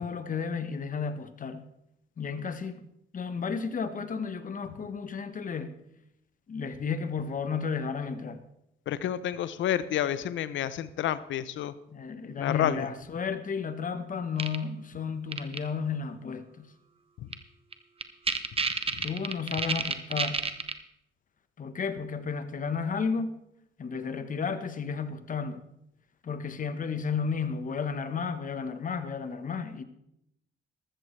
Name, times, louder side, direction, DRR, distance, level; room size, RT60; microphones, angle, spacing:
voice 1, 0.0-1.6 2.2-2.8 3.1-5.8 6.5-8.4 11.9-16.7 19.0-20.5 21.6-23.4 23.8-25.7 26.2-29.8, left 5 dB, 40° left, 10 dB, 1.2 m, -33 dB
voice 2, 8.9-11.7 12.4-12.9 17.2-17.3 18.9-19.0, left 11 dB, 75° left, 15 dB, 0.7 m, -29 dB
sound 1, 14.4-14.6 15.3-15.6 17.3-17.4 17.7-17.8 18.0-20.7, right 5 dB, 30° right, 1.0 m, -29 dB
14.0 x 13.5 x 3.3 m, 0.81 s
cardioid pair, 90°, 20 cm